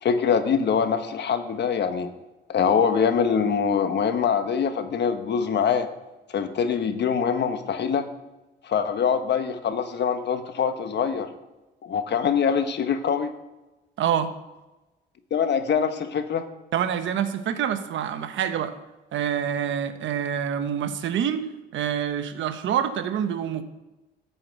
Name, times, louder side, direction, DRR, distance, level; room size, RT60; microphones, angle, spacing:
voice 1, 0.0-2.1 2.5-5.9 6.3-8.1 8.6-11.3 11.8-13.3 15.3-16.4, left 7 dB, 60° left, 8 dB, 1.3 m, -24 dB
voice 2, 14.0-14.3 16.7-18.7 19.1-21.4 21.7-23.6, right 9 dB, 75° right, 10 dB, 1.1 m, -26 dB
12.5 x 5.7 x 8.0 m, 1.1 s
cardioid pair, 90°, 20 cm